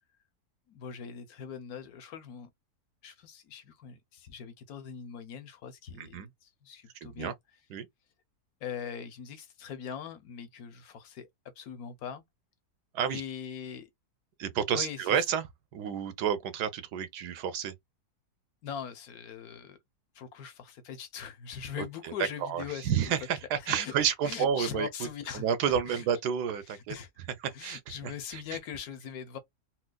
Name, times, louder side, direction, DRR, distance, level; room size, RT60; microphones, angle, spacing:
voice 1, 0.7-2.5 3.0-7.3 8.6-11.3 11.6-12.2 13.1-13.9 14.7-15.2 18.6-19.8 20.1-22.9 23.6-24.0 24.2-26.1 26.7-27.1 27.5-29.4, left 7 dB, 70° left, 1.2 m, -41 dB
voice 2, 7.0-7.3 7.7-7.9 12.9-13.2 14.4-15.5 15.7-17.7 21.8-22.1 22.4-25.1 25.3-26.9 27.4-28.4, right 8 dB, 90° right, 1.3 m, -30 dB
4.4 x 2.2 x 2.2 m
omnidirectional pair, 1.7 m